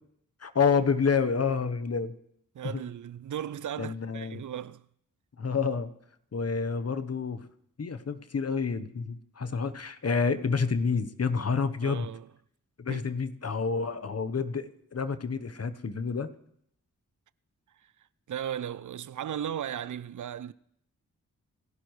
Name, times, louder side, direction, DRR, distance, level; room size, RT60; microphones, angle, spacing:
voice 1, 0.4-2.1 2.7-2.8 3.8-4.4 5.4-5.9 6.3-7.5 7.8-12.1 12.8-16.3, left 5 dB, 45° left, 1.0 m, -29 dB
voice 2, 2.5-4.9 5.5-5.6 11.8-12.3 12.9-13.1 18.3-20.5, right 10 dB, 65° right, 0.5 m, -36 dB
28.5 x 11.5 x 3.2 m
cardioid pair, 40°, 33 cm